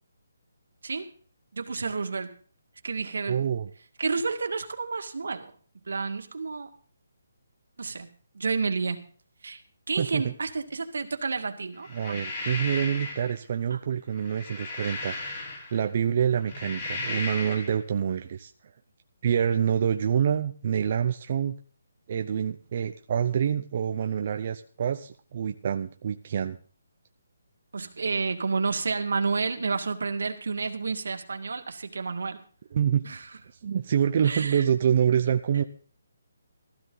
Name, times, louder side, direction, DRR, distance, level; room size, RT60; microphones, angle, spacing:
voice 1, 1.5-2.3 2.8-3.4 4.0-5.5 5.9-6.7 7.8-9.0 9.4-9.6 9.9-12.3 13.7-13.8 27.7-32.4 33.0-33.3 34.2-34.6, right 4 dB, 75° right, 5 dB, 2.0 m, -30 dB
voice 2, 3.3-3.7 10.0-10.3 11.9-15.2 15.7-18.5 19.2-21.6 22.1-26.6 32.7-33.0 33.6-35.6, right 8 dB, 35° right, 6 dB, 0.6 m, -26 dB
sound 1, 11.8-13.3 14.1-15.9 16.4-17.7, left 3 dB, 30° left, 4.9 m, -35 dB
15.5 x 13.5 x 3.9 m, 0.43 s
hypercardioid pair, 175°, 0 cm